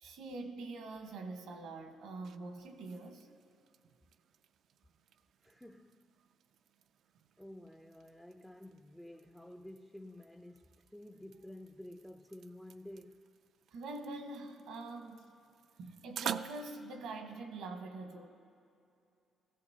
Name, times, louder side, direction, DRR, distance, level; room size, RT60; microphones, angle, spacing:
voice 1, 0.0-3.3 13.7-15.3 15.8-18.3, right 2 dB, 85° right, 1.1 m, -44 dB
sound 1, 1.9-16.7, right 9 dB, 70° right, 0.3 m, -50 dB
voice 2, 5.4-6.1 7.4-13.3, left 1 dB, 5° left, 0.4 m, -51 dB
18.5 x 15.5 x 2.8 m
cardioid pair, 90°, 0 cm